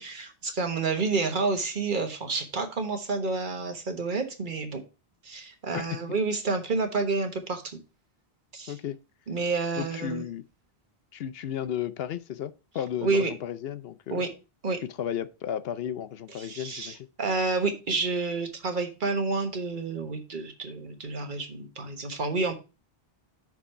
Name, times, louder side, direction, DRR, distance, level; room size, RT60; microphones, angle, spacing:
voice 1, 0.0-4.8 5.2-7.8 8.5-8.7 9.3-10.2 13.0-13.3 14.1-14.3 14.6-14.8 16.4-22.5, right 3 dB, 50° right, 1.4 m, -29 dB
voice 2, 9.8-10.4 11.1-14.2 15.0-17.1, left 10 dB, 70° left, 0.8 m, -34 dB
6.1 x 4.8 x 5.6 m
omnidirectional pair, 1.1 m